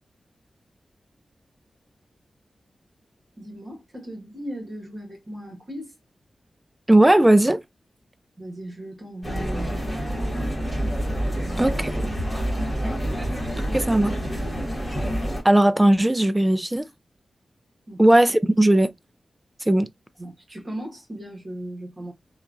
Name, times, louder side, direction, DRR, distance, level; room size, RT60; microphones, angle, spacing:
voice 1, 3.4-5.9 8.4-10.5 11.4-12.4 13.1-13.3 13.6-13.7 17.9-18.0 20.2-22.1, right 1 dB, 40° right, 1.3 m, -37 dB
voice 2, 6.9-7.6 11.6-11.9 13.7-14.1 15.4-16.9 18.0-18.9 19.7-19.9, right 1 dB, 10° right, 0.3 m, -17 dB
sound 1, 9.2-15.4, equal, 5° left, 1.4 m, -27 dB
2.9 x 2.3 x 2.4 m
wide cardioid pair, 120°, 0 cm